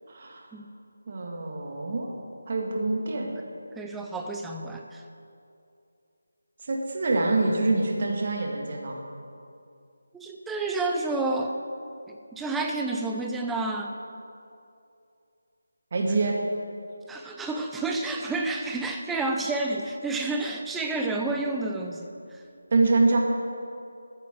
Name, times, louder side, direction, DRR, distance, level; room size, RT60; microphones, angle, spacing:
voice 1, 0.1-0.5 1.1-2.1 2.5-3.3 6.6-9.0 15.9-16.4 22.7-23.2, right 3 dB, 40° right, 0 dB, 2.0 m, -25 dB
voice 2, 3.8-5.0 10.1-11.6 12.1-13.9 17.1-22.4, right 2 dB, 5° right, 2 dB, 0.6 m, -30 dB
14.0 x 8.9 x 6.3 m, 2.6 s
figure-of-eight pair, 160°, 0 cm